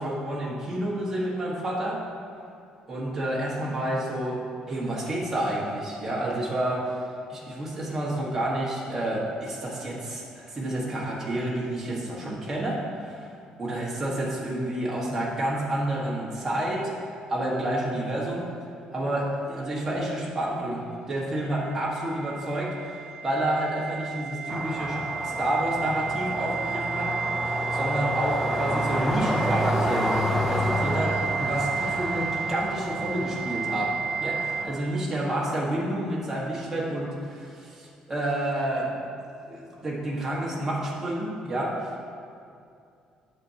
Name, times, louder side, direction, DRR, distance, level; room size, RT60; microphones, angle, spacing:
voice 1, 0.0-2.1 2.9-7.0 7.3-13.3 13.6-16.8 17.3-18.5 18.9-25.0 25.2-27.1 27.4-39.0 39.4-42.0, right 1 dB, 15° right, -6 dB, 1.4 m, -29 dB
sound 1, 21.6-34.6, right 6 dB, 40° right, 0.6 m, -32 dB
sound 2, 24.5-34.8, equal, 5° left, 0.4 m, -30 dB
8.7 x 7.5 x 2.8 m, 2.4 s
cardioid pair, 170°, 2 cm